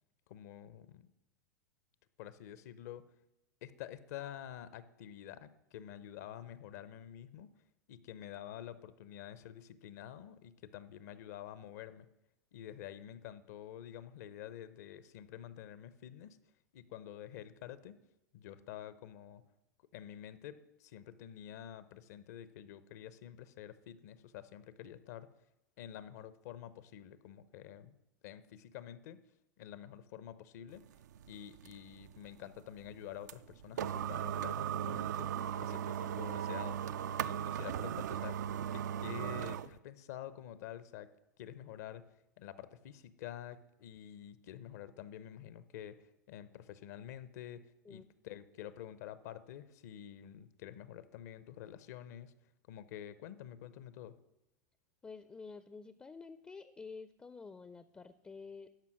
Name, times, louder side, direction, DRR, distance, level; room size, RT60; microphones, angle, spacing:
voice 1, 0.3-1.1 2.2-3.0 3.6-7.5 7.9-12.1 12.5-16.4 16.7-18.0 18.3-19.4 19.9-25.3 25.8-28.0 28.2-29.2 29.6-30.8 31.3-35.3 35.6-36.8 37.2-38.4 38.7-41.1 41.4-42.0 42.4-47.6 47.9-52.3 52.7-54.1, left 11 dB, 60° left, 15 dB, 0.7 m, -48 dB
sound 1, 30.7-39.8, right 9 dB, 70° right, 0.4 m, -38 dB
voice 2, 55.0-58.7, left 4 dB, 15° left, 13 dB, 0.4 m, -49 dB
12.0 x 5.5 x 6.3 m, 0.89 s
hypercardioid pair, 95°, 10 cm